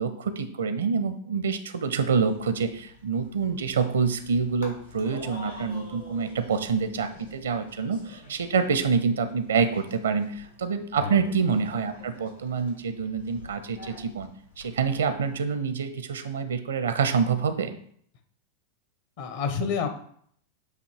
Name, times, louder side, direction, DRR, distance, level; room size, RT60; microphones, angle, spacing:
voice 1, 0.0-14.3 14.6-17.7, right 5 dB, 65° right, 10 dB, 0.6 m, -26 dB
sound 1, 2.1-15.4, left 2 dB, 85° left, 1.8 m, -49 dB
voice 2, 11.0-11.3 19.2-19.9, left 6 dB, 50° left, 7 dB, 0.9 m, -29 dB
8.3 x 2.8 x 4.5 m, 0.62 s
figure-of-eight pair, 90°, 0 cm